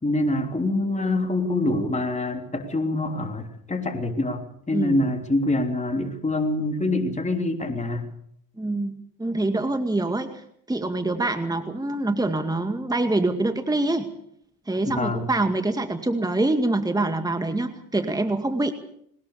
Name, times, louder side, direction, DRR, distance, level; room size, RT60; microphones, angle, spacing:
voice 1, 0.0-8.1 14.8-15.3, left 2 dB, 15° left, 4 dB, 3.6 m, -25 dB
voice 2, 4.7-5.1 8.6-10.4 10.7-14.1 14.7-18.7, right 2 dB, 10° right, 7 dB, 2.1 m, -25 dB
21.0 x 20.0 x 7.0 m, 0.69 s
hypercardioid pair, 80°, 49 cm